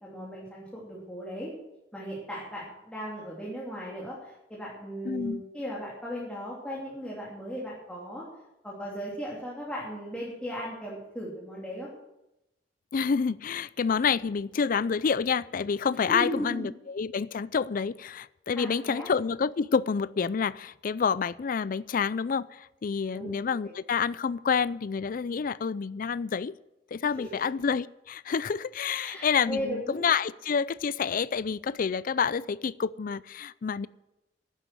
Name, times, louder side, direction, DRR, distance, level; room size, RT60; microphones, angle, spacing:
voice 1, 0.0-1.5 1.9-8.2 8.6-11.9 16.1-16.7 18.5-19.1 23.1-23.3 23.6-23.7 27.2-27.4 28.9-30.0, equal, 5° left, -6 dB, 3.0 m, -37 dB
voice 2, 5.0-5.4 12.9-26.6 26.9-33.9, left 6 dB, 50° left, 19 dB, 0.4 m, -28 dB
11.5 x 10.0 x 7.7 m, 0.90 s
head